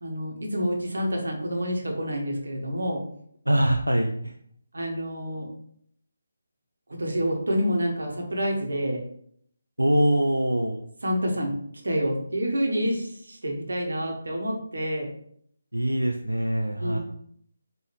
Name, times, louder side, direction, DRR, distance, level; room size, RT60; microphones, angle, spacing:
voice 1, 0.0-3.0 4.7-5.5 7.0-9.0 11.0-11.6 11.8-15.1 16.8-17.0, equal, 60° right, 1 dB, 1.0 m, -28 dB
voice 2, 3.5-4.3 9.8-10.8 15.7-17.0, right 1 dB, 80° right, 2 dB, 0.4 m, -23 dB
4.8 x 2.6 x 2.9 m, 0.66 s
figure-of-eight pair, 150°, 0 cm